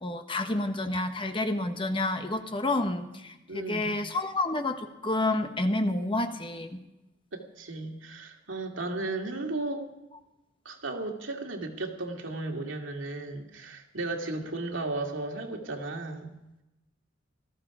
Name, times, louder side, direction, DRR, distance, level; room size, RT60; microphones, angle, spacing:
voice 1, 0.0-6.8, left 2 dB, 25° left, 7 dB, 1.2 m, -29 dB
voice 2, 3.5-4.0 7.3-9.9 10.6-16.3, right 2 dB, 80° right, 2 dB, 2.4 m, -35 dB
19.0 x 14.0 x 4.9 m, 0.94 s
head